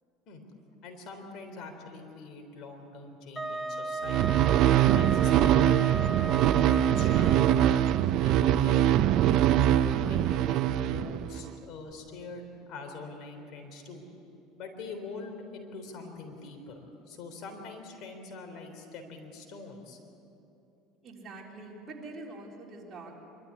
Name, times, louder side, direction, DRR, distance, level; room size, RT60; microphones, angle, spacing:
voice 1, 0.8-4.4 4.9-7.8 8.2-14.0 14.6-20.0, left 3 dB, 60° left, 4 dB, 3.7 m, -44 dB
Wind instrument woodwind instrument, 3.4-8.0, right 3 dB, 5° left, 1.6 m, -35 dB
sound 1, 4.1-11.5, right 11 dB, 60° right, 0.6 m, -23 dB
voice 2, 21.0-23.2, right 2 dB, 35° right, -2 dB, 4.1 m, -44 dB
25.0 x 13.0 x 9.7 m, 2.8 s
supercardioid pair, 115°, 0 cm